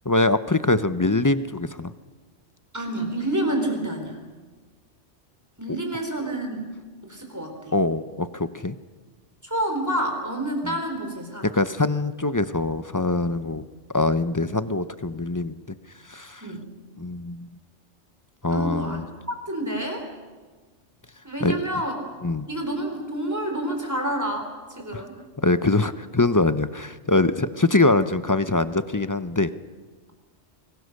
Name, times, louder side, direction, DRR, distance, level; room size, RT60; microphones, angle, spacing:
voice 1, 0.1-1.9 5.7-5.8 7.7-8.7 10.6-10.7 11.5-13.6 13.9-15.6 16.1-16.4 17.0-17.5 18.4-19.1 21.4-21.6 22.2-22.5 24.9-25.1 25.4-29.5, left 2 dB, 25° left, 12 dB, 0.5 m, -23 dB
voice 2, 2.7-4.2 5.6-6.7 7.0-7.7 9.4-11.6 16.4-16.6 18.5-20.0 21.2-21.9 22.5-25.1, right 1 dB, 15° right, 3 dB, 4.0 m, -28 dB
24.5 x 21.0 x 6.6 m, 1.4 s
omnidirectional pair, 1.2 m